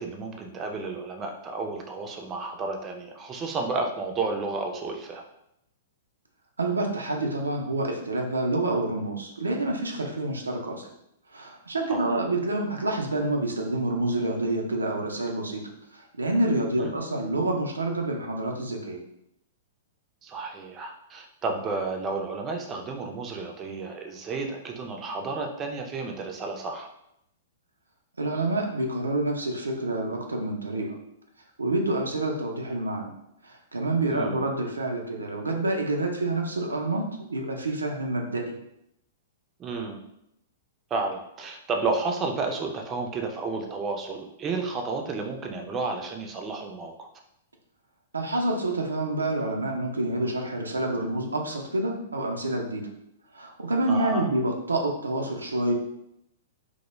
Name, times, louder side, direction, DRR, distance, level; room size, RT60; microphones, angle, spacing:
voice 1, 0.0-5.2 11.9-12.1 16.8-16.9 20.2-26.9 34.1-34.4 39.6-40.0 40.9-47.1 53.9-54.3, right 3 dB, 25° right, 2 dB, 0.4 m, -32 dB
voice 2, 6.6-10.9 11.3-15.6 15.9-19.0 28.2-31.0 31.6-33.1 33.4-38.6 48.1-52.9 53.3-55.7, right 2 dB, 90° right, 2 dB, 0.4 m, -28 dB
2.2 x 2.1 x 3.0 m, 0.79 s
hypercardioid pair, 115°, 0 cm